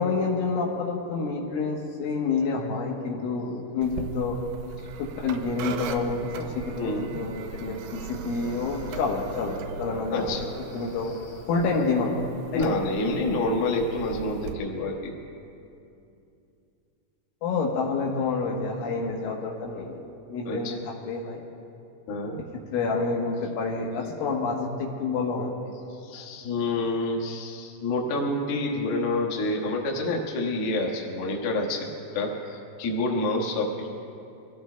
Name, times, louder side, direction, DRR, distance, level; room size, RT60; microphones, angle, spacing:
voice 1, 0.0-4.4 5.0-11.1 11.5-12.2 12.5-12.7 17.4-21.4 22.7-25.5, left 4 dB, 75° left, -2 dB, 3.5 m, -28 dB
sound 1, 3.8-14.5, right 6 dB, 80° right, 2.3 m, -39 dB
voice 2, 6.8-7.1 10.1-10.5 10.7-10.8 12.5-15.1 20.4-20.7 22.1-22.4 26.0-33.9, left 2 dB, 60° left, -1 dB, 3.0 m, -28 dB
26.5 x 16.5 x 2.3 m, 2.7 s
omnidirectional pair, 5.7 m